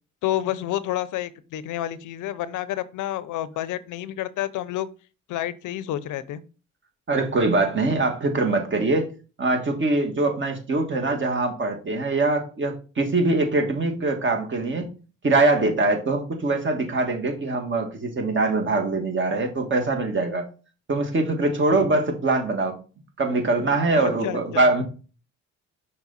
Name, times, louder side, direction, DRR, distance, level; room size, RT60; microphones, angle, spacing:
voice 1, 0.2-4.9 5.3-6.4 24.0-24.7, left 13 dB, 85° left, 15 dB, 0.7 m, -29 dB
voice 2, 7.1-9.1 9.4-14.9 15.2-20.5 20.9-22.8 23.2-24.8, right 2 dB, 40° right, 5 dB, 2.0 m, -23 dB
6.0 x 4.5 x 4.1 m, 0.34 s
cardioid pair, 90°, 30 cm